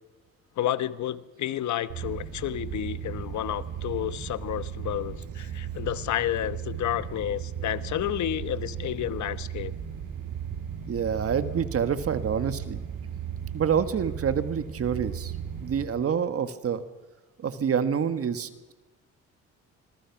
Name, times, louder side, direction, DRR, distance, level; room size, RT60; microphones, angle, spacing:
voice 1, 0.6-9.7, left 11 dB, 70° left, 14 dB, 1.1 m, -30 dB
sound 1, 1.9-15.8, right 8 dB, 85° right, 6.2 m, -36 dB
voice 2, 10.9-12.8 13.5-15.3 15.6-16.8 17.4-18.7, right 7 dB, 50° right, 11 dB, 1.6 m, -27 dB
26.0 x 21.0 x 6.0 m, 1.1 s
cardioid pair, 90°, 30 cm